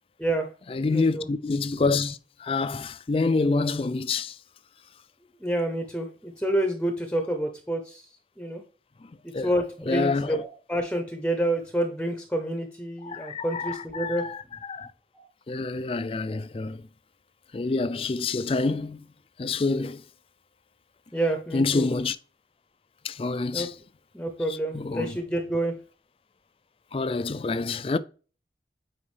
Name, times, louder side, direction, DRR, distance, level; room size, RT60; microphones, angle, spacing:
voice 1, 0.2-0.5 0.9-1.3 5.4-8.6 9.2-14.3 15.1-15.3 21.1-21.8 23.5-23.7 24.1-25.8, right 1 dB, 5° left, 0.7 m, -28 dB
voice 2, 0.7-4.4 9.3-9.5 9.9-10.3 13.1-14.4 14.7-14.9 15.5-16.8 17.5-19.0 19.4-20.0 21.5-22.2 23.0-23.7 24.7-25.1 26.9-28.0, left 3 dB, 30° left, 0.3 m, -27 dB
8.6 x 4.8 x 3.3 m
head